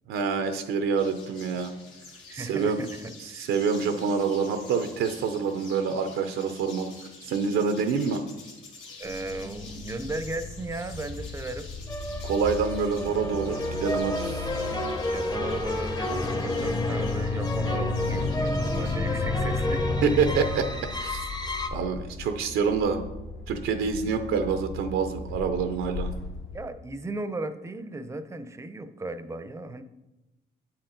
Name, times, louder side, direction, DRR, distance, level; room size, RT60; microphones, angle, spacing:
voice 1, 0.1-1.7 2.3-2.8 3.3-6.9 7.2-8.2 12.2-14.4 20.0-20.6 21.0-21.2 21.7-23.0 23.5-26.1, right 5 dB, 90° right, 7 dB, 0.6 m, -26 dB
sound 1, 1.0-18.9, left 3 dB, 80° left, 1.5 m, -48 dB
voice 2, 2.3-3.5 9.0-11.7 15.1-19.9 21.6-21.7 26.5-29.8, right 2 dB, 15° right, 10 dB, 0.5 m, -36 dB
sound 2, 9.0-26.7, left 3 dB, 60° left, 1.0 m, -39 dB
sound 3, 11.9-21.7, left 2 dB, 20° left, 0.7 m, -29 dB
8.3 x 4.4 x 3.8 m, 1.0 s
cardioid pair, 90°, 20 cm